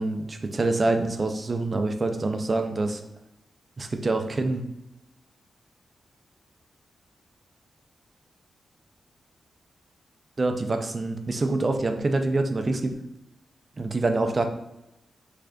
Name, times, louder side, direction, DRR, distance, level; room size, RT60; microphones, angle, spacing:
voice 1, 0.0-3.0 3.8-4.6 10.4-12.9 13.8-14.5, right 2 dB, 35° right, 6 dB, 0.4 m, -26 dB
3.3 x 2.5 x 3.6 m, 0.90 s
wide cardioid pair, 110°, 0 cm